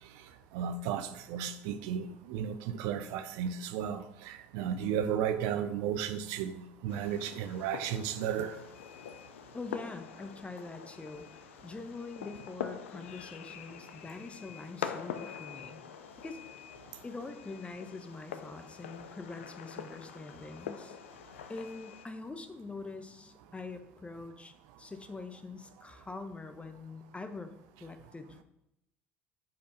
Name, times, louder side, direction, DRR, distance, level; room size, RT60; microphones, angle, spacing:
voice 1, 0.5-8.6, right 8 dB, 65° right, 0.5 m, -34 dB
Fireworks, 6.9-22.1, left 9 dB, 80° left, 0.4 m, -45 dB
voice 2, 9.5-15.8 16.2-16.4 17.0-21.0 21.5-27.5 27.8-28.4, left 3 dB, 20° left, 0.9 m, -44 dB
7.4 x 4.6 x 4.3 m
hypercardioid pair, 60°, 7 cm